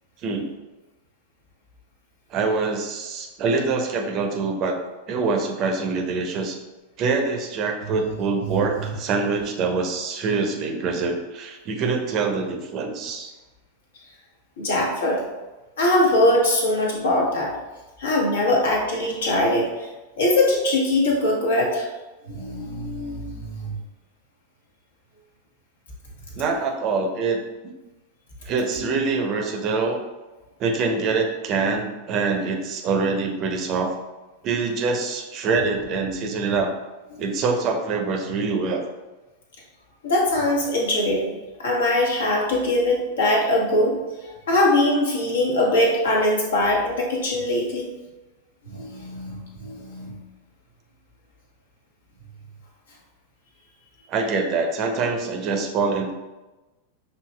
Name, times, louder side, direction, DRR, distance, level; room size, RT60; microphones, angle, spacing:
voice 1, 2.3-4.8 5.1-6.6 7.0-13.3 26.4-27.4 28.5-30.0 30.6-33.9 34.4-36.7 37.2-38.8 54.1-56.1, right 4 dB, 35° right, 3 dB, 0.6 m, -24 dB
voice 2, 8.4-8.9 14.6-15.2 15.8-17.5 18.0-19.9 20.2-21.9 22.3-23.8 36.0-36.1 37.1-37.3 40.0-41.3 41.6-44.0 44.2-47.9 48.7-50.2, left 1 dB, 65° left, -1 dB, 1.0 m, -22 dB
6.3 x 2.8 x 2.2 m, 1.1 s
figure-of-eight pair, 90°, 0 cm